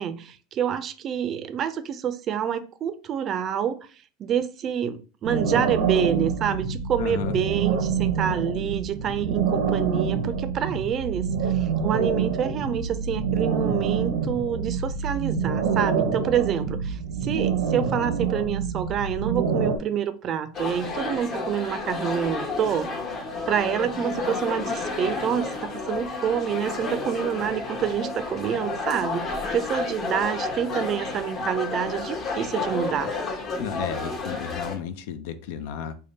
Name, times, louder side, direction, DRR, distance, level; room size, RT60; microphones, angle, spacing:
voice 1, 0.0-3.8 4.2-22.9 23.5-33.1, right 8 dB, 40° right, 0.4 m, -27 dB
sound 1, 5.2-19.8, right 6 dB, 90° right, 0.7 m, -26 dB
voice 2, 7.0-7.4 33.6-35.9, left 9 dB, 75° left, 0.5 m, -33 dB
sound 2, 20.5-34.8, left 3 dB, 35° left, 0.9 m, -31 dB
3.5 x 2.1 x 4.0 m
supercardioid pair, 125°, 0 cm